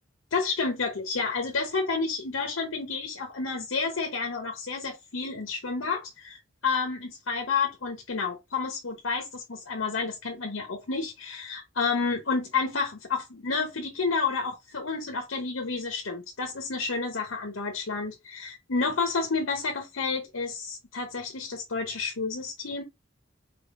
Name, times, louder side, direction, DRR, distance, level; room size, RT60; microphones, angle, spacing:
voice 1, 0.3-22.8, left 4 dB, 85° left, 0.9 m, -30 dB
4.6 x 3.5 x 2.5 m
head